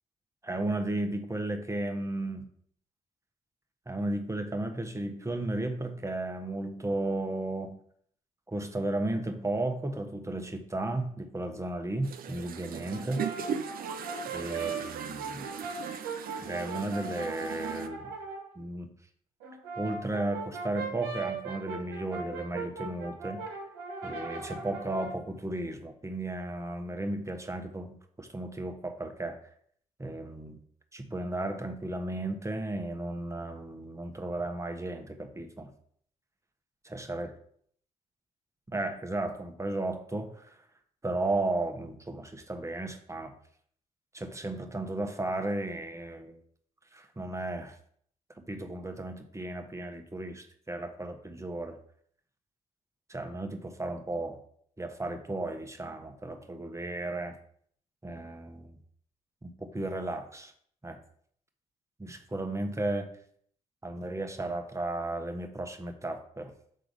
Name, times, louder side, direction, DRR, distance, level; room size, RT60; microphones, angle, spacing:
voice 1, 0.4-2.5 3.9-7.8 8.5-13.3 14.3-15.5 16.4-18.1 18.5-18.9 19.8-23.5 24.0-29.4 30.0-30.6 30.9-35.7 36.8-37.3 38.7-40.7 41.0-43.3 44.1-46.4 46.9-47.8 48.5-51.8 53.1-54.4 54.8-57.3 58.0-58.8 59.4-60.5 60.8-61.0 62.0-63.1 63.8-66.5, right 2 dB, 15° right, 5 dB, 1.2 m, -34 dB
sound 1, 12.0-17.9, right 7 dB, 60° right, 0.7 m, -38 dB
Brass instrument, 12.9-18.5 19.4-25.2, right 4 dB, 85° right, 1.3 m, -39 dB
6.5 x 3.8 x 5.3 m, 0.62 s
hypercardioid pair, 45°, 17 cm